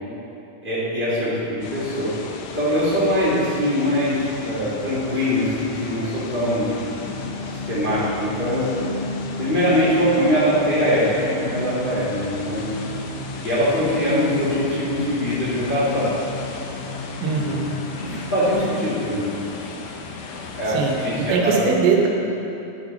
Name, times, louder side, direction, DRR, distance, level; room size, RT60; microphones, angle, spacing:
voice 1, 0.6-2.1 2.5-6.7 7.6-8.6 9.4-12.6 13.4-16.1 17.4-17.6 18.0-19.3 20.6-21.5, equal, 20° left, -10 dB, 1.7 m, -22 dB
sound 1, 1.6-21.4, left 4 dB, 90° left, 2.9 m, -36 dB
sound 2, 7.0-18.5, left 2 dB, 50° left, 2.0 m, -33 dB
voice 2, 17.2-17.7 20.7-20.9 21.3-22.1, right 5 dB, 85° right, 0 dB, 3.3 m, -20 dB
12.5 x 7.5 x 4.2 m, 2.8 s
omnidirectional pair, 5.0 m